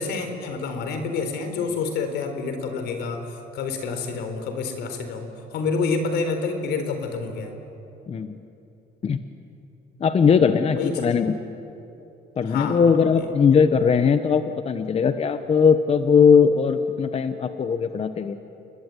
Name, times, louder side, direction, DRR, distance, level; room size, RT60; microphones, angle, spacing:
voice 1, 0.0-7.5 10.8-11.1 12.5-12.8 13.2-13.3, left 4 dB, 80° left, 7 dB, 4.1 m, -28 dB
voice 2, 8.1-8.4 9.0-9.2 10.0-11.4 12.4-18.4, left 6 dB, 35° left, 9 dB, 1.1 m, -19 dB
30.0 x 21.0 x 9.3 m, 2.9 s
cardioid pair, 110°, 17 cm